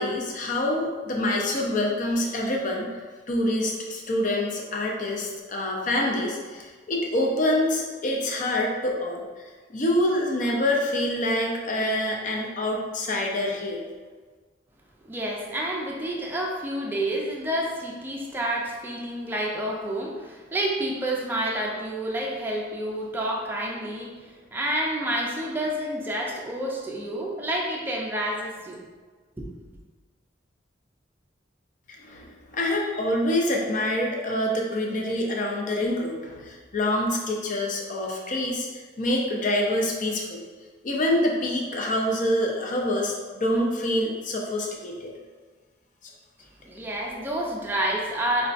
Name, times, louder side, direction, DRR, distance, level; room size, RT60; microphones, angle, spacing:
voice 1, 0.0-2.9 3.3-9.4 9.7-13.9 31.9-40.4 40.8-45.1 46.0-46.1, left 1 dB, 45° left, 0 dB, 0.5 m, -26 dB
voice 2, 15.1-28.8 29.4-29.5 46.6-48.5, right 1 dB, 10° right, -2 dB, 0.4 m, -29 dB
5.0 x 2.2 x 2.5 m, 1.4 s
head